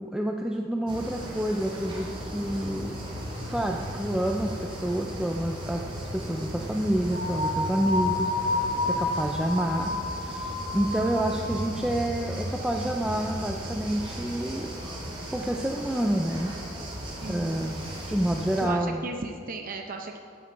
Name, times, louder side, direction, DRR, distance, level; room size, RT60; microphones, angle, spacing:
voice 1, 0.0-3.0 3.5-8.3 8.8-14.7 15.3-16.5 17.3-17.8 18.1-19.0, right 1 dB, 5° right, 1 dB, 0.4 m, -28 dB
sound 1, 0.9-18.7, right 1 dB, 25° right, 2.6 m, -36 dB
sound 2, 7.1-11.7, left 2 dB, 90° left, 2.6 m, -30 dB
voice 2, 17.2-17.7 18.6-20.2, right 3 dB, 45° right, 4 dB, 0.6 m, -36 dB
15.0 x 7.9 x 4.6 m, 2.4 s
head